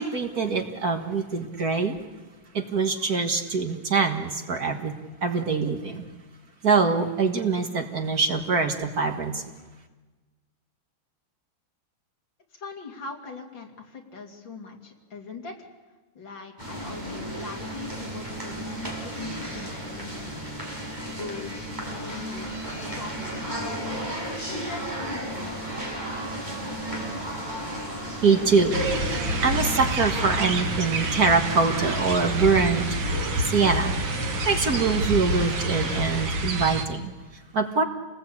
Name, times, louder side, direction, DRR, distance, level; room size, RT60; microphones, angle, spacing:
voice 1, 0.0-2.0 2.5-4.9 5.2-6.1 6.6-9.4 28.2-28.8 29.1-32.8 33.4-37.1 37.5-37.8, right 4 dB, 50° right, 5 dB, 2.0 m, -24 dB
voice 2, 12.5-15.7 16.1-20.6 21.1-23.9 24.4-25.7, left 4 dB, 65° left, 2 dB, 3.3 m, -41 dB
sound 1, 16.6-36.2, right 1 dB, 20° right, 6.2 m, -34 dB
sound 2, 28.7-36.9, right 1 dB, 70° right, 2.5 m, -28 dB
28.5 x 19.5 x 8.5 m, 1.3 s
omnidirectional pair, 2.2 m